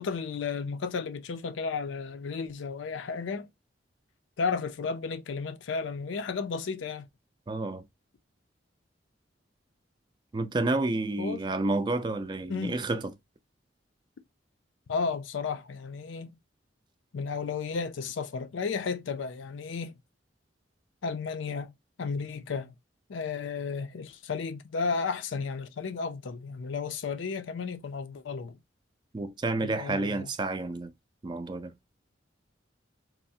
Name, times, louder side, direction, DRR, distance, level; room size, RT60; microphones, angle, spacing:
voice 1, 0.0-3.5 4.4-7.1 11.2-11.4 12.5-12.9 14.9-16.4 17.1-20.0 21.0-22.7 23.1-28.6 29.6-30.3, left 5 dB, 85° left, 0.4 m, -33 dB
voice 2, 7.5-7.8 10.3-13.1 29.1-30.9 31.2-31.7, right 2 dB, 25° right, 0.3 m, -30 dB
3.3 x 2.0 x 2.6 m
head